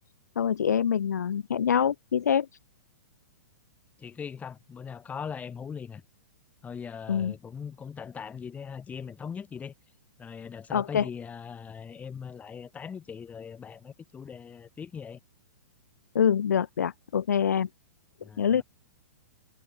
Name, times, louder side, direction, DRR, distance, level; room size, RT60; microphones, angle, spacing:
voice 1, 0.4-2.5 7.1-7.3 10.7-11.1 16.1-17.7 18.4-18.6, left 8 dB, 75° left, 0.6 m, -25 dB
voice 2, 4.0-6.0 6.6-9.7 10.2-15.2 18.2-18.6, left 6 dB, 15° left, 5.7 m, -40 dB
hypercardioid pair, 115°, 9 cm